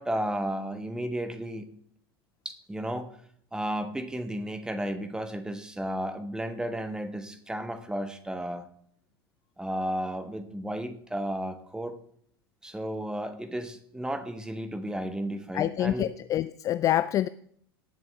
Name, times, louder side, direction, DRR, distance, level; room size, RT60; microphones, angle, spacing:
voice 1, 0.0-1.7 2.4-3.1 3.5-8.7 9.6-12.0 12.6-16.1, right 1 dB, 5° right, 9 dB, 1.3 m, -33 dB
voice 2, 15.5-17.3, left 12 dB, 25° left, 15 dB, 0.3 m, -26 dB
18.5 x 7.6 x 3.4 m, 0.64 s
figure-of-eight pair, 85°, 13 cm